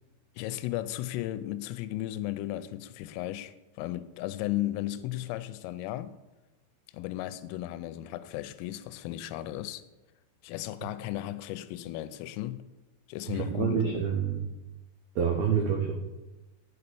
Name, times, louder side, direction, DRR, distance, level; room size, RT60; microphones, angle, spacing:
voice 1, 0.4-6.2 6.9-9.8 10.4-12.7 13.1-14.1 15.7-15.8, left 14 dB, 85° left, 3.1 m, -35 dB
voice 2, 13.3-14.5 15.2-16.0, right 7 dB, 90° right, 2.1 m, -27 dB
8.4 x 6.8 x 6.8 m
omnidirectional pair, 5.9 m